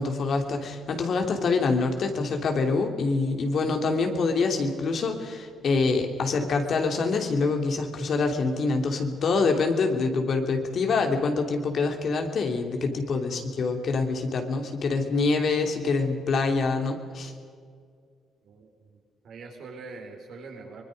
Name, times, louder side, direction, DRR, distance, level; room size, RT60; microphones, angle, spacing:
voice 1, 0.0-17.3, left 4 dB, 60° left, 4 dB, 3.0 m, -25 dB
voice 2, 12.9-13.3 18.4-19.0 19.2-20.8, right 4 dB, 70° right, 1 dB, 4.9 m, -44 dB
24.5 x 21.0 x 5.3 m, 2.1 s
cardioid pair, 90°, 0 cm